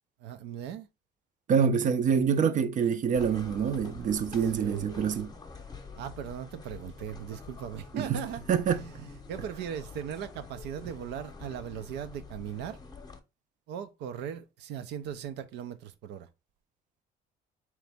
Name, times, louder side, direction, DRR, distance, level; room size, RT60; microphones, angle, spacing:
voice 1, 0.2-0.9 4.5-4.9 6.0-12.8 13.7-16.3, right 9 dB, 90° right, 0.6 m, -39 dB
voice 2, 1.5-5.3 7.9-8.2 8.5-9.1, right 7 dB, 50° right, 0.6 m, -26 dB
sound 1, 3.1-13.2, left 4 dB, 25° left, 0.8 m, -46 dB
3.9 x 3.1 x 3.4 m
cardioid pair, 110°, 17 cm